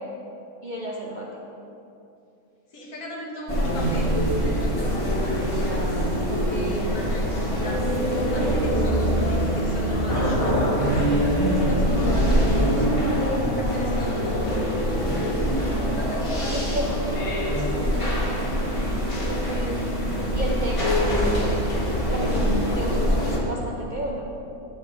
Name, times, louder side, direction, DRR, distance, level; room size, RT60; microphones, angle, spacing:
voice 1, 0.6-1.4 14.5-14.6 16.5-16.9 19.3-19.8 20.3-21.5 22.1-24.3, right 1 dB, 50° right, -3 dB, 0.6 m, -32 dB
voice 2, 2.7-4.1 4.4-11.0 11.4-12.9 13.5-15.3 15.8-17.3 17.6-17.9 23.0-23.2, left 1 dB, 85° left, -2 dB, 1.8 m, -36 dB
sound 1, 3.5-23.4, equal, 20° left, 1.5 m, -23 dB
9.6 x 5.3 x 3.8 m, 2.7 s
omnidirectional pair, 1.5 m